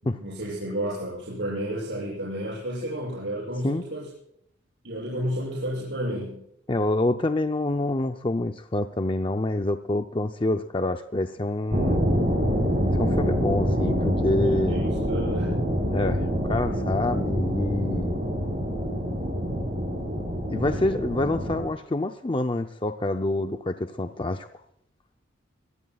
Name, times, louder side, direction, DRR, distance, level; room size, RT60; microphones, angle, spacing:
voice 1, 0.0-4.1 4.8-6.4 14.4-15.6, equal, 65° right, -6 dB, 7.4 m, -31 dB
voice 2, 6.7-12.0 13.0-14.8 15.9-18.2 20.5-24.6, left 2 dB, 25° left, 7 dB, 0.5 m, -27 dB
sound 1, 11.7-21.7, equal, 35° right, 6.5 m, -26 dB
24.5 x 18.0 x 2.4 m, 0.73 s
head